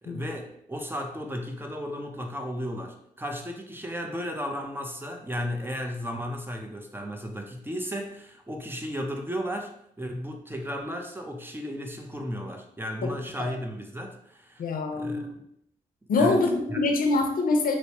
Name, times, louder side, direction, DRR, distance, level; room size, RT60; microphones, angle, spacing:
voice 1, 0.0-15.4 16.2-16.4 16.7-16.8, equal, 15° right, 2 dB, 0.8 m, -34 dB
voice 2, 14.6-15.3 16.1-17.8, left 3 dB, 70° left, 4 dB, 0.6 m, -24 dB
3.1 x 3.0 x 2.9 m, 0.72 s
supercardioid pair, 40°, 15 cm